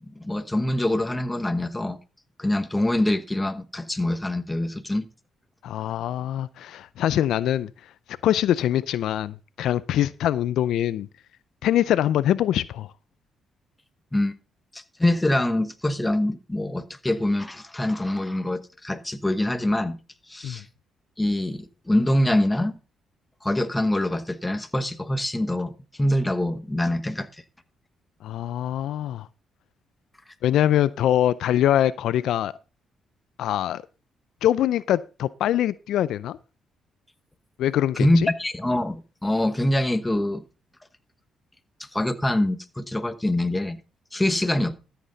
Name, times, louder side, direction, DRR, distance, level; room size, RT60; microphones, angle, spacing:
voice 1, 0.1-2.0 2.4-5.1 14.1-14.3 14.7-20.0 20.3-20.7 21.2-22.8 23.4-27.3 38.0-40.4 41.8-43.8 44.1-44.7, left 1 dB, 10° left, 1.1 m, -24 dB
voice 2, 5.6-7.7 8.2-11.1 11.6-12.9 20.4-20.6 28.2-29.3 30.4-32.5 33.4-33.8 34.4-36.4 37.6-38.1, left 11 dB, 80° left, 0.4 m, -23 dB
13.5 x 7.9 x 4.0 m
cardioid pair, 90°, 0 cm